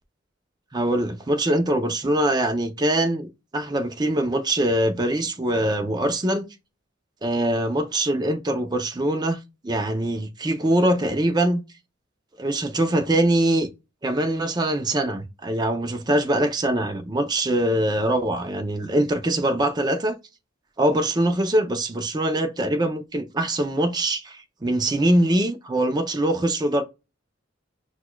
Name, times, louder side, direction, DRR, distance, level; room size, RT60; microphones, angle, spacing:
voice 1, 0.7-3.3 3.5-6.4 7.2-9.4 9.6-11.6 12.4-13.7 14.0-20.2 20.8-26.8, right 1 dB, 20° right, 0.5 m, -23 dB
6.3 x 2.3 x 2.2 m
head